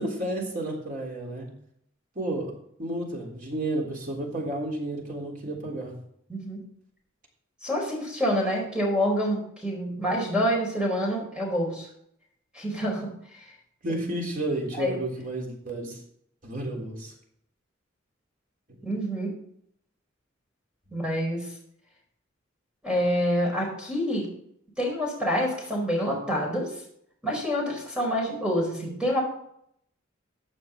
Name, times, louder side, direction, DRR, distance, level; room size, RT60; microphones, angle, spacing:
voice 1, 0.0-1.5 2.2-2.5 2.8-5.9 13.8-16.0 16.4-17.1 20.9-21.0, right 1 dB, 45° right, -1 dB, 3.6 m, -31 dB
voice 2, 7.6-11.8 12.5-13.4 13.9-14.0 14.7-15.0 18.8-19.3 20.9-21.4 22.8-24.3 24.8-26.7 27.2-29.2, equal, 5° right, -2 dB, 4.6 m, -27 dB
15.5 x 8.6 x 3.8 m, 0.70 s
head